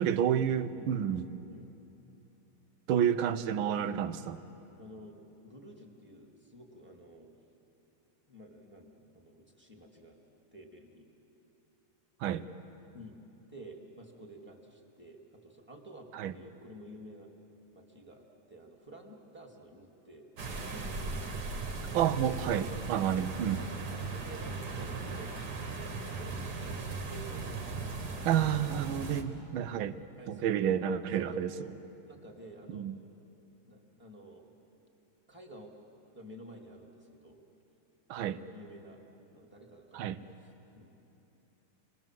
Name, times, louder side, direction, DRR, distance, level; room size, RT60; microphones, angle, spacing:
voice 1, 0.0-1.4 2.9-4.4 12.2-12.5 16.1-16.3 21.9-23.6 28.2-30.0 30.3-31.5 32.7-33.0 38.1-38.4 39.9-40.2, right 9 dB, 75° right, 12 dB, 1.5 m, -30 dB
voice 2, 4.8-5.2 5.4-7.3 8.3-10.2 10.5-11.1 12.9-13.1 13.5-17.3 17.7-20.3 20.6-21.6 23.9-25.4 25.8-28.3 30.2-30.8 31.2-31.7 32.0-32.9 33.6-34.6 35.3-35.7 36.1-37.4 38.1-39.0 39.3-40.2 40.8-41.1, right 1 dB, 5° right, -1 dB, 2.1 m, -51 dB
sound 1, 20.4-29.2, right 3 dB, 50° right, 2.0 m, -38 dB
28.0 x 20.5 x 7.5 m, 3.0 s
omnidirectional pair, 2.3 m